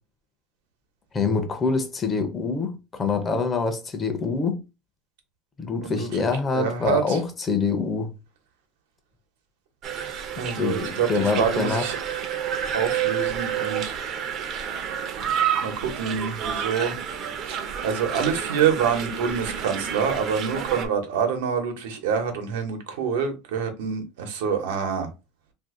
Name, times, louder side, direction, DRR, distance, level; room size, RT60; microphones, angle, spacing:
voice 1, 1.1-4.6 5.6-8.1 10.5-11.8, left 4 dB, 20° left, 0.6 m, -25 dB
voice 2, 5.8-6.2 6.5-7.2 10.3-12.0 12.7-14.0 15.6-17.0 17.4-25.1, right 7 dB, 90° right, 1.0 m, -26 dB
sound 1, 9.8-20.9, right 8 dB, 45° right, 0.6 m, -29 dB
2.6 x 2.6 x 3.7 m
supercardioid pair, 135°, 0 cm